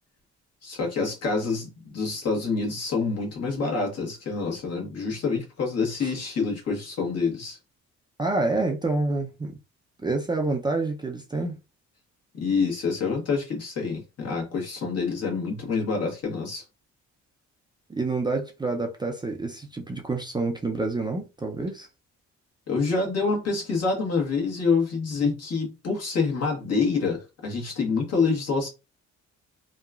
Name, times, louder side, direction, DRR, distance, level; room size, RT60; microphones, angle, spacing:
voice 1, 0.6-7.6 12.3-16.6 22.7-28.7, left 4 dB, 55° left, 1.3 m, -27 dB
voice 2, 8.2-9.6 10.0-11.6 17.9-21.9, right 3 dB, 15° right, 0.4 m, -28 dB
2.9 x 2.3 x 2.3 m
cardioid pair, 90°, 30 cm